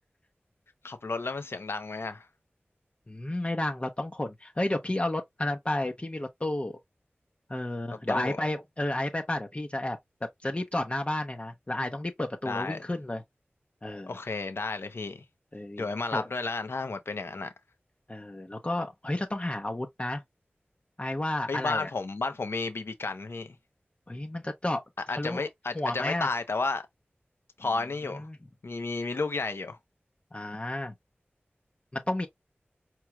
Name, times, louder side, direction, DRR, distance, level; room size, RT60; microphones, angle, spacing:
voice 1, 0.8-2.3 8.1-8.4 12.5-12.8 14.1-15.2 15.8-17.5 21.5-23.6 25.1-26.9 27.6-28.3 28.6-29.8, left 3 dB, 75° left, 0.7 m, -32 dB
voice 2, 3.1-6.7 7.5-10.0 10.4-13.2 13.8-14.1 15.5-15.9 16.1-16.3 18.1-20.2 21.0-21.9 24.1-24.8 25.1-25.4 25.7-26.3 28.2-28.4 30.3-30.9 31.9-32.3, left 1 dB, 30° left, 0.6 m, -31 dB
4.6 x 3.0 x 2.3 m
wide cardioid pair, 45°, 4 cm